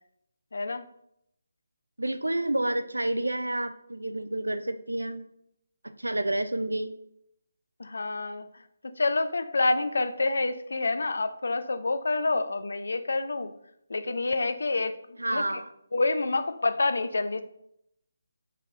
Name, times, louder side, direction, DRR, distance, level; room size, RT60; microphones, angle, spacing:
voice 1, 0.5-0.8 7.8-8.6 8.9-13.5 13.9-15.6 15.9-17.4, left 3 dB, 60° left, 11 dB, 0.3 m, -28 dB
voice 2, 2.0-5.3 6.0-6.9 15.2-15.7, right 1 dB, 80° right, 10 dB, 0.3 m, -29 dB
3.8 x 3.2 x 2.7 m, 0.76 s
figure-of-eight pair, 150°, 0 cm